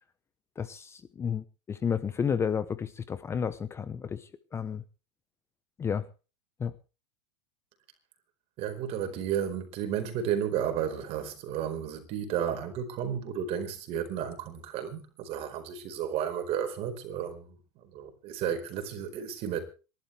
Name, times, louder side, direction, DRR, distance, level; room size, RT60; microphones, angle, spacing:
voice 1, 0.6-4.8 5.8-6.1 6.6-6.7, left 7 dB, 20° left, 0.8 m, -32 dB
voice 2, 8.6-17.6 17.8-19.6, right 9 dB, 45° right, 4.7 m, -33 dB
26.5 x 12.0 x 3.4 m
supercardioid pair, 140°, 15 cm